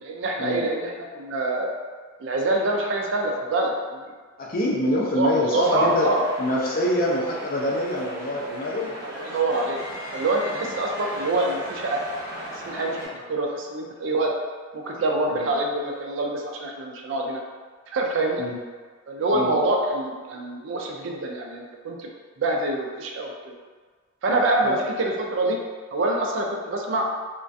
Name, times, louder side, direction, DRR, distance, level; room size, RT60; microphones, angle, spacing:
voice 1, 0.0-1.7 2.2-4.0 5.0-6.2 9.0-9.8 10.1-12.0 12.6-13.0 13.3-14.3 14.7-17.4 17.9-18.4 19.1-22.1 22.4-23.5 24.2-25.6 25.9-27.1, right 2 dB, 65° right, 0 dB, 0.4 m, -25 dB
voice 2, 4.4-6.1 6.4-9.0 10.5-10.7 13.1-13.2 15.3-15.5 18.4-18.6 19.3-19.5 24.6-24.8, left 1 dB, 45° left, -3 dB, 0.4 m, -25 dB
sound 1, 5.6-13.1, equal, 15° right, 0.8 m, -37 dB
2.3 x 2.1 x 2.5 m, 1.5 s
head